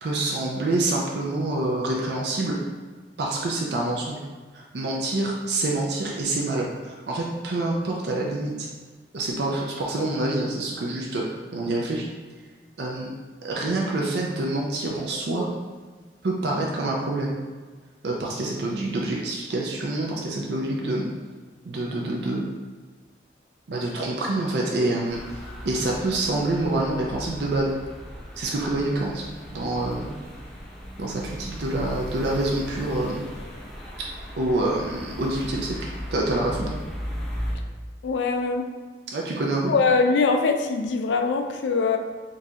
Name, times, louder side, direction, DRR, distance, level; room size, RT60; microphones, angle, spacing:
voice 1, 0.0-2.6 3.2-4.2 4.5-8.7 9.1-12.1 12.8-13.1 13.4-15.5 16.2-17.4 18.0-21.1 21.6-22.5 23.7-25.2 25.6-27.7 28.3-30.1 31.0-33.2 34.4-36.8 39.1-39.7, right 2 dB, 65° right, -2 dB, 0.5 m, -26 dB
sound 1, 25.1-37.6, equal, 5° left, 0.5 m, -37 dB
voice 2, 38.0-38.7 39.7-42.0, left 4 dB, 80° left, 4 dB, 0.4 m, -22 dB
3.9 x 2.4 x 2.8 m, 1.4 s
head